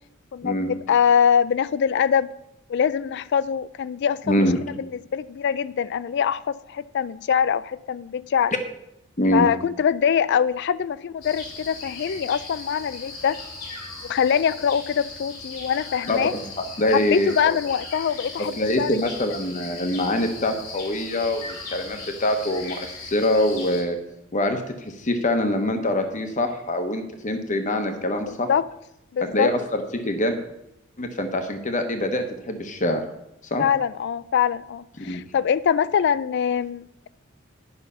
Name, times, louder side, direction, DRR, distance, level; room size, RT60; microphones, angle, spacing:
voice 1, 0.3-2.3 2.7-4.4 5.1-8.5 9.3-13.4 14.1-16.3 16.9-18.9 28.3-28.7 29.1-29.5 33.6-37.1, left 7 dB, 55° left, 0.3 m, -23 dB
voice 2, 4.3-4.6 9.2-9.5 16.1-17.5 18.6-24.0 24.3-28.5 29.3-30.4 31.0-33.0 33.5-33.6 35.0-35.2, left 1 dB, 35° left, 1.0 m, -24 dB
sound 1, 11.2-23.8, left 3 dB, 80° left, 2.7 m, -38 dB
10.5 x 5.7 x 5.5 m
head